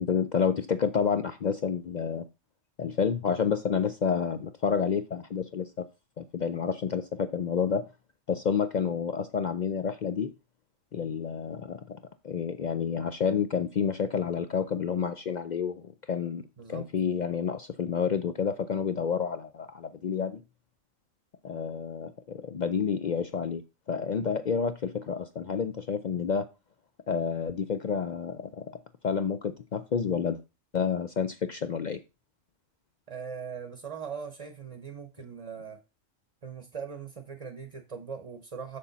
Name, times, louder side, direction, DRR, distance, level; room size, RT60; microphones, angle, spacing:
voice 1, 0.0-2.2 2.8-5.9 6.2-7.8 8.3-10.3 10.9-12.0 12.2-16.4 16.7-20.4 21.4-23.6 23.9-26.5 27.1-30.4 30.7-32.0, left 6 dB, 65° left, 0.4 m, -29 dB
voice 2, 33.1-35.8 36.4-38.8, right 6 dB, 30° right, 0.8 m, -40 dB
7.0 x 6.7 x 4.0 m
omnidirectional pair, 1.3 m